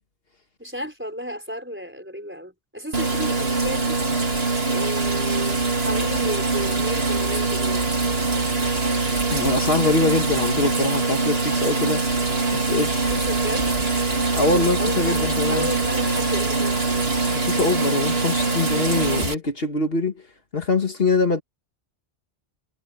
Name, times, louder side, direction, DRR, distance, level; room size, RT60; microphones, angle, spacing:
voice 1, 0.6-4.0 4.7-7.9 13.0-13.7 14.8-17.1, equal, 10° right, 4.4 m, -33 dB
sound 1, 2.9-19.3, right 3 dB, 65° right, 2.5 m, -23 dB
voice 2, 9.3-12.0 12.5-13.1 14.3-15.7 17.3-20.2 20.5-21.4, left 3 dB, 60° left, 2.0 m, -23 dB
omnidirectional pair, 1.1 m